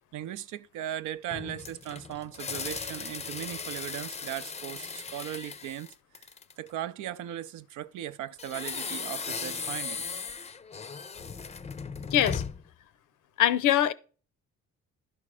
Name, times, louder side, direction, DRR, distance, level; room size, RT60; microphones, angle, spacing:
voice 1, 0.1-5.9 6.6-10.0, right 12 dB, 90° right, 0.6 m, -38 dB
sound 1, 1.3-6.7 8.4-12.7, left 5 dB, 20° left, 0.5 m, -37 dB
voice 2, 12.1-12.4 13.4-13.9, left 11 dB, 85° left, 0.7 m, -22 dB
11.0 x 5.2 x 4.8 m
cardioid pair, 90°, 30 cm